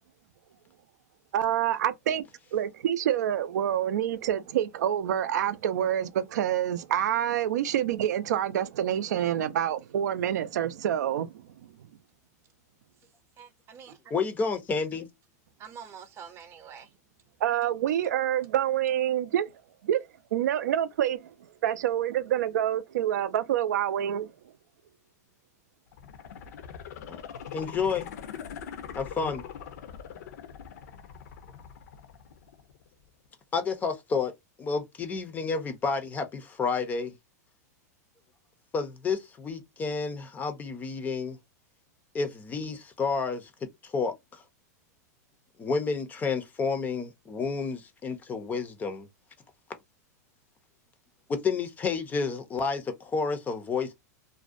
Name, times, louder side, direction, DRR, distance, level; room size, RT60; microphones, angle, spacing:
voice 1, 1.3-2.2 2.5-11.3 17.4-19.5 19.8-20.1 20.3-21.3 21.6-24.3, right 10 dB, 80° right, 0.4 m, -27 dB
voice 2, 13.4-14.1 15.6-16.9, right 7 dB, 30° right, 0.6 m, -46 dB
voice 3, 14.1-15.1 27.1-27.2 27.5-28.1 28.9-29.4 33.5-34.3 34.6-37.1 38.7-41.4 42.1-43.5 43.8-44.4 45.6-49.1 51.3-53.9, left 5 dB, 20° left, 0.4 m, -30 dB
sound 1, 25.9-32.9 33.3-33.4, left 8 dB, 70° left, 0.6 m, -42 dB
2.5 x 2.0 x 2.4 m
hypercardioid pair, 135°, 9 cm